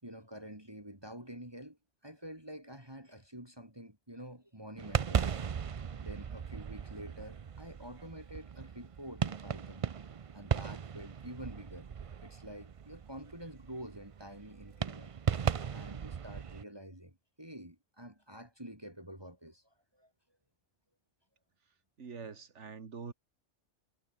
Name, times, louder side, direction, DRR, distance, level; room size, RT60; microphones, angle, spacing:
voice 1, 0.0-9.9 10.3-11.9 12.2-15.1 15.7-20.1, equal, 20° right, 4.5 m, -48 dB
sound 1, 4.8-16.6, right 7 dB, 45° right, 0.4 m, -37 dB
voice 2, 22.0-23.1, right 5 dB, 75° right, 2.0 m, -44 dB
omnidirectional pair, 1.2 m